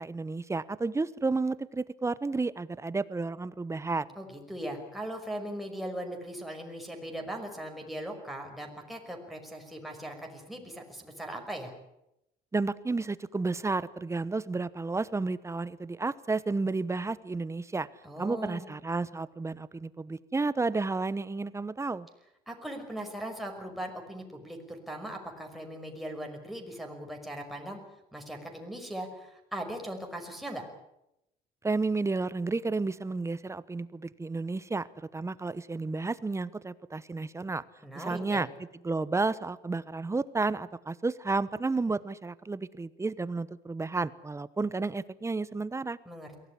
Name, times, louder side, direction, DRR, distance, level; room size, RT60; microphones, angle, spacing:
voice 1, 0.0-4.1 12.5-17.9 18.2-22.1 31.6-34.9 35.1-37.6 38.0-38.5 38.8-46.0, right 3 dB, 15° right, 17 dB, 1.0 m, -31 dB
voice 2, 4.2-11.7 18.0-18.7 22.5-27.8 28.1-30.7 37.8-38.4 46.1-46.4, right 1 dB, ahead, 2 dB, 5.6 m, -39 dB
23.0 x 17.0 x 10.0 m, 0.83 s
cardioid pair, 110°, 17 cm